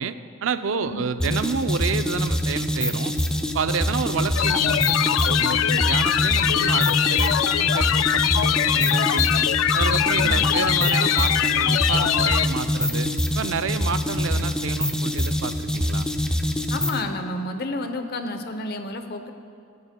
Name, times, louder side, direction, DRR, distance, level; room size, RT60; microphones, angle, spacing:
voice 1, 0.0-3.2 3.5-9.5 9.7-13.1 13.3-16.1, right 6 dB, 65° right, 11 dB, 0.4 m, -29 dB
sound 1, 1.2-17.1, left 1 dB, 5° left, 0.5 m, -25 dB
sound 2, 4.4-12.5, left 10 dB, 70° left, 0.4 m, -22 dB
voice 2, 10.2-10.5 16.7-19.3, left 2 dB, 50° left, 7 dB, 0.8 m, -31 dB
23.0 x 9.5 x 2.2 m, 2.4 s
head